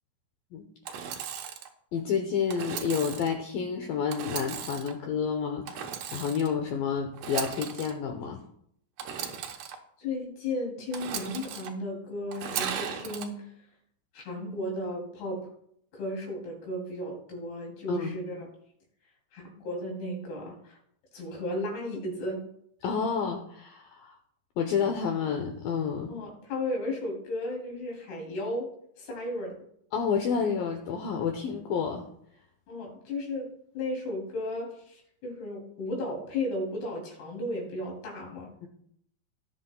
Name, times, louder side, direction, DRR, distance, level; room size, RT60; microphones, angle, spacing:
voice 1, 0.5-1.2 1.9-8.4 17.9-18.2 22.8-24.2 24.6-26.2 29.9-32.1 38.6-38.7, left 6 dB, 85° left, 4 dB, 2.0 m, -30 dB
Engine / Sawing, 0.8-1.7 2.5-3.3 4.1-4.9 5.7-6.5 7.1-7.9 9.0-9.7 10.9-11.7 12.3-13.3, right 8 dB, 85° right, 1.8 m, -36 dB
voice 2, 10.0-13.4 14.1-15.4 15.9-18.5 19.3-20.8 21.1-22.4 26.1-28.7 29.0-29.5 32.7-33.5 33.7-38.7, left 1 dB, 65° left, -1 dB, 4.8 m, -34 dB
18.0 x 8.1 x 2.2 m, 0.68 s
omnidirectional pair, 5.2 m